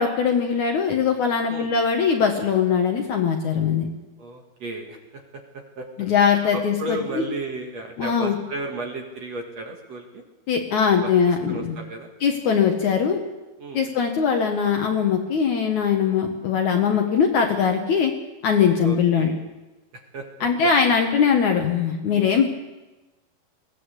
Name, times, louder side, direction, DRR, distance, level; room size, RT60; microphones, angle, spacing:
voice 1, 0.0-3.9 6.0-7.2 8.0-8.4 10.5-11.8 12.2-13.2 13.7-18.1 18.4-19.3 20.4-22.5, left 6 dB, 60° left, 3 dB, 2.3 m, -21 dB
voice 2, 4.2-5.0 5.8-6.1 6.5-10.2 11.0-11.1 11.5-12.1 13.6-13.8 18.8-19.4 20.1-20.2 22.1-22.3, right 2 dB, 50° right, 2 dB, 2.7 m, -34 dB
20.5 x 16.0 x 8.3 m, 1.1 s
omnidirectional pair, 4.6 m